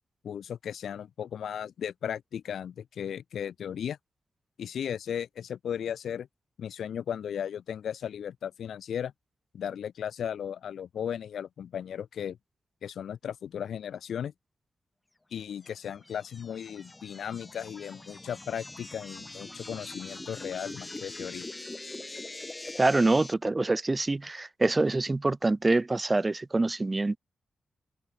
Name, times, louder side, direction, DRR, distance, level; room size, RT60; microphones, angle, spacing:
voice 1, 0.2-4.0 4.6-6.3 6.6-9.1 9.5-12.4 12.8-14.3 15.3-21.5, left 8 dB, 90° left, 0.4 m, -36 dB
sound 1, 15.6-23.3, left 2 dB, 20° left, 3.8 m, -43 dB
voice 2, 22.8-27.2, right 2 dB, 20° right, 0.3 m, -25 dB
wide cardioid pair, 110°, 0 cm